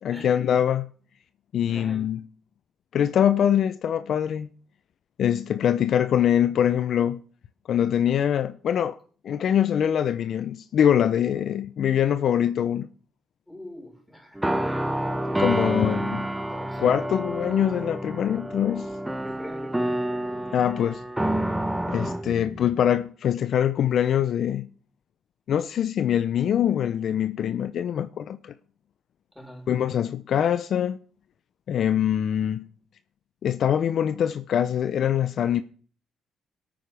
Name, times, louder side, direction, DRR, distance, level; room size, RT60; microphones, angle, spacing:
voice 1, 0.0-0.9 1.5-2.2 2.9-4.5 5.2-7.2 7.7-9.0 9.2-12.9 15.4-16.3 16.8-18.9 20.5-21.0 21.9-24.7 25.5-28.5 29.7-31.0 31.7-32.7 33.4-35.6, left 9 dB, 65° left, 0.5 m, -23 dB
voice 2, 1.7-2.1 13.5-14.9 15.3-15.9 16.5-17.0 19.2-20.5 29.3-29.7, left 1 dB, 5° left, 4.6 m, -44 dB
sound 1, 14.4-22.8, right 1 dB, 10° right, 0.9 m, -28 dB
22.0 x 9.1 x 3.4 m
cardioid pair, 90°, 0 cm